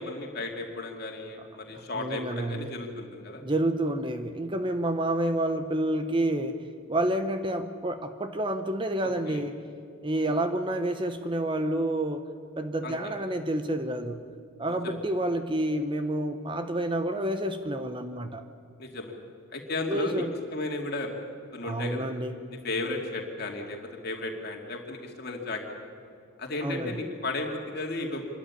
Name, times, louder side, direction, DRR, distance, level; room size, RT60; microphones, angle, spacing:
voice 1, 0.0-3.4 9.3-9.4 10.1-10.3 12.8-13.0 14.8-14.9 18.8-19.1 19.5-20.2 20.5-21.1 21.5-22.1 22.6-23.8 24.0-25.6 26.4-28.3, left 2 dB, 45° left, 1 dB, 2.7 m, -34 dB
voice 2, 1.9-2.7 3.4-9.6 10.0-12.3 12.6-14.3 14.6-18.4 19.9-20.3 21.6-22.3 26.6-27.0, right 1 dB, 25° right, 8 dB, 0.8 m, -29 dB
25.5 x 13.0 x 9.9 m, 2.3 s
head